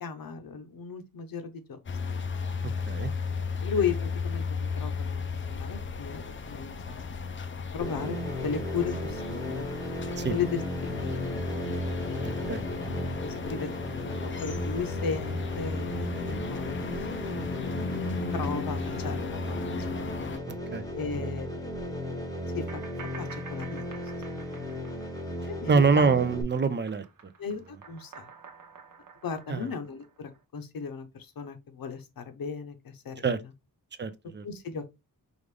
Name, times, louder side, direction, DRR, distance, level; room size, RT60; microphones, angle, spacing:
voice 1, 0.0-1.8 3.6-5.2 5.5-7.3 7.7-8.2 8.4-9.7 10.3-11.1 13.2-13.7 14.4-17.9 18.3-19.6 19.9-20.0 20.9-21.6 22.5-22.8 23.2-24.0 24.3-24.8 25.5-26.1 27.4-28.3 29.2-33.3 34.4-34.9, left 6 dB, 70° left, 0.8 m, -36 dB
sound 1, 1.9-20.4, left 5 dB, 35° left, 0.4 m, -35 dB
sound 2, 7.8-26.4, equal, 10° left, 0.8 m, -35 dB
voice 2, 12.2-12.6 20.5-20.8 25.7-27.0 29.5-29.7 33.2-33.4 34.0-34.4, right 5 dB, 30° right, 0.4 m, -25 dB
sound 3, 22.7-26.1 26.4-30.4, right 5 dB, 60° right, 0.9 m, -49 dB
4.9 x 2.5 x 3.3 m
wide cardioid pair, 165°, 36 cm